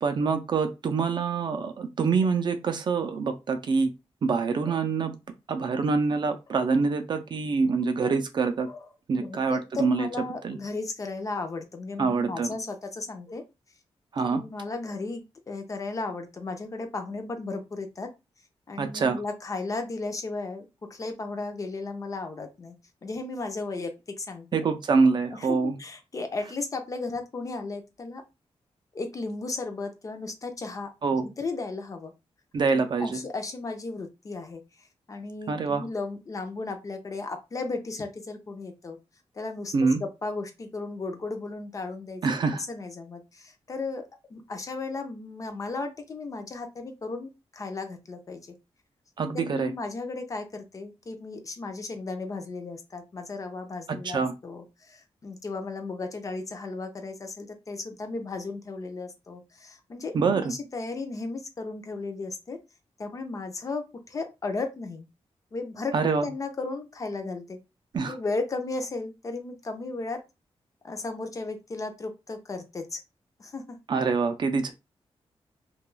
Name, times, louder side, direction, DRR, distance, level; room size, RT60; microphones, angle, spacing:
voice 1, 0.0-3.9 4.2-5.1 5.5-8.7 9.1-10.1 10.4-10.6 12.0-12.5 14.1-14.4 18.8-19.2 24.5-25.8 31.0-31.3 32.5-33.2 35.5-35.9 39.7-40.0 42.2-42.6 49.2-49.7 53.9-54.3 60.1-60.5 65.9-66.3 67.9-68.2 73.9-74.7, right 4 dB, 45° right, 0.3 m, -25 dB
voice 2, 9.1-13.4 14.2-18.1 18.7-20.7 20.9-22.7 23.0-24.6 25.3-28.2 28.9-30.9 31.2-32.1 32.7-34.6 35.1-39.0 39.4-42.2 42.7-48.5 49.3-62.6 63.0-65.0 65.5-67.6 68.0-70.2 70.8-73.0 73.4-73.8, left 3 dB, 30° left, 0.4 m, -35 dB
2.2 x 2.2 x 3.1 m
wide cardioid pair, 180°, 11 cm